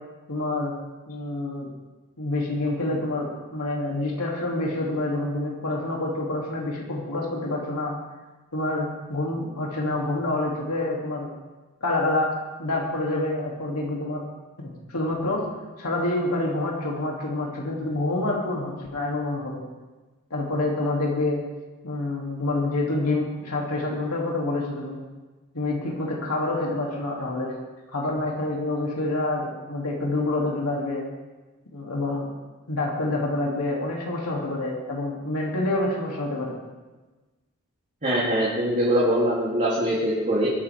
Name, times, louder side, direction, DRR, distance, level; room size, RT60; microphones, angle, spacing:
voice 1, 0.3-0.7 1.1-1.7 2.2-7.9 8.5-11.3 11.8-12.3 12.6-14.2 14.6-15.5 15.8-19.6 20.3-21.4 21.8-25.0 25.5-27.5 27.9-31.0 31.7-32.3 32.7-36.6, left 2 dB, 90° left, -2 dB, 2.8 m, -27 dB
voice 2, 38.0-40.5, equal, 35° right, -7 dB, 3.1 m, -23 dB
21.5 x 10.5 x 3.6 m, 1.2 s
head